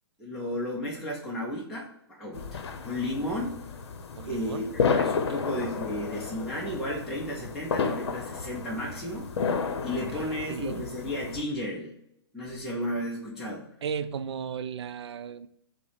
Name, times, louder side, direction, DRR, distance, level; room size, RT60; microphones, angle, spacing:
voice 1, 0.2-3.5 4.2-11.9 12.3-13.6, left 1 dB, ahead, 0.4 m, -33 dB
sound 1, 2.3-11.4, left 5 dB, 70° left, 0.7 m, -32 dB
voice 2, 4.2-4.8 9.8-10.8 13.8-15.5, right 7 dB, 75° right, 0.4 m, -36 dB
5.7 x 2.1 x 4.0 m
hypercardioid pair, 165°, 14 cm